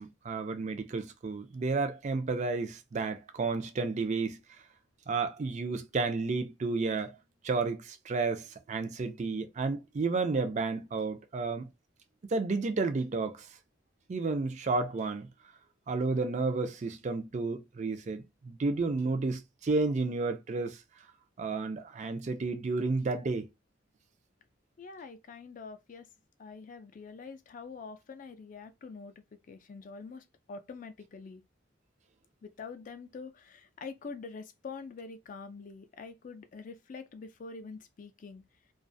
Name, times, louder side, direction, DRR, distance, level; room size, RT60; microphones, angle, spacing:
voice 1, 0.0-4.4 5.1-7.2 7.4-11.7 12.3-13.5 14.1-15.3 15.9-20.8 21.4-23.5, right 3 dB, 40° right, 0.4 m, -31 dB
voice 2, 24.8-26.1 26.4-31.4 32.4-38.4, left 4 dB, 40° left, 0.3 m, -45 dB
2.4 x 2.2 x 2.5 m
head